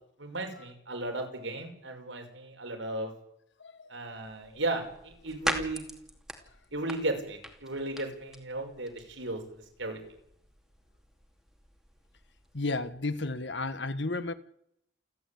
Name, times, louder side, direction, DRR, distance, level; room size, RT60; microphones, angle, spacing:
voice 1, 0.2-3.1 3.9-5.9 6.7-9.4 9.8-10.0, right 2 dB, 85° right, 5.9 m, -35 dB
voice 2, 3.6-4.6 12.5-14.3, left 2 dB, 70° left, 1.6 m, -34 dB
sound 1, 4.2-12.9, equal, ahead, 2.7 m, -42 dB
29.0 x 12.0 x 8.6 m
head